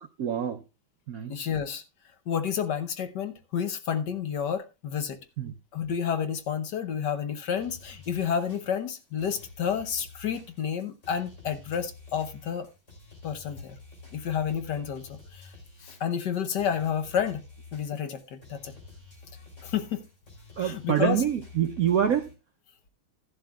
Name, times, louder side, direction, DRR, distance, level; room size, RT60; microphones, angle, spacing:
voice 1, 0.2-0.6 1.1-1.5 5.4-5.5 20.6-22.3, right 9 dB, 70° right, 0.8 m, -26 dB
voice 2, 1.3-1.8 2.3-5.2 5.7-12.7 13.2-13.8 14.1-15.5 15.8-17.4 17.7-18.7 19.6-20.1 20.6-21.2, left 8 dB, 60° left, 1.4 m, -30 dB
sound 1, 7.6-22.3, left 3 dB, 35° left, 3.7 m, -50 dB
13.5 x 11.5 x 2.3 m
omnidirectional pair, 2.3 m